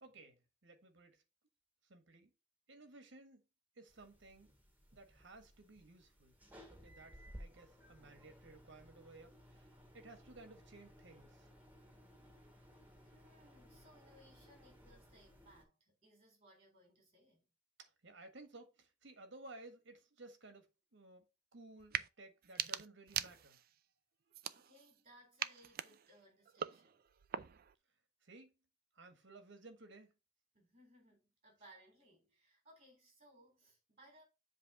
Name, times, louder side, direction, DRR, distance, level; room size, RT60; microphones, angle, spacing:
voice 1, 0.0-1.2 1.8-2.3 2.7-3.4 3.8-4.5 4.9-6.3 6.7-11.5 17.8-20.7 20.9-21.3 21.5-23.6 28.2-28.5 28.9-30.1, right 2 dB, 65° right, 1.6 m, -57 dB
sound 1, 3.9-15.6, equal, 10° right, 2.0 m, -59 dB
voice 2, 13.0-17.5 24.5-27.1 30.5-34.2, right 1 dB, 30° right, 3.9 m, -65 dB
sound 2, 21.8-22.1 22.4-23.7 24.3-25.0 25.4-27.7, right 10 dB, 50° right, 0.4 m, -43 dB
7.7 x 3.3 x 5.8 m
head